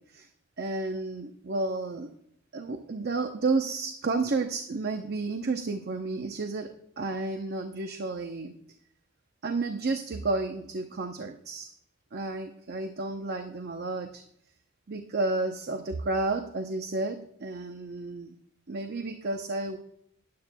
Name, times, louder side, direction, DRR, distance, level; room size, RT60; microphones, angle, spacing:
voice 1, 0.6-2.1 2.5-8.5 9.4-11.7 12.1-14.2 14.9-18.3 18.7-19.8, right 3 dB, 50° right, 6 dB, 0.7 m, -31 dB
19.0 x 8.5 x 2.2 m, 0.71 s
head